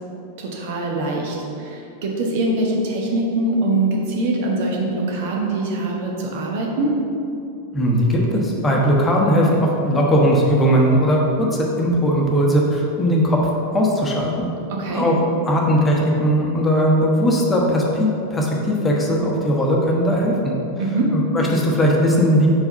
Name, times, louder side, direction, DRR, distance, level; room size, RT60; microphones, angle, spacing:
voice 1, 0.4-7.0 14.7-15.1 20.8-21.1, right 2 dB, 50° right, -1 dB, 1.0 m, -23 dB
voice 2, 7.7-13.4 13.7-14.5 14.9-15.2 15.4-20.5 21.1-22.5, equal, 15° left, -2 dB, 1.0 m, -18 dB
4.7 x 4.4 x 5.5 m, 2.8 s
figure-of-eight pair, 90°, 0 cm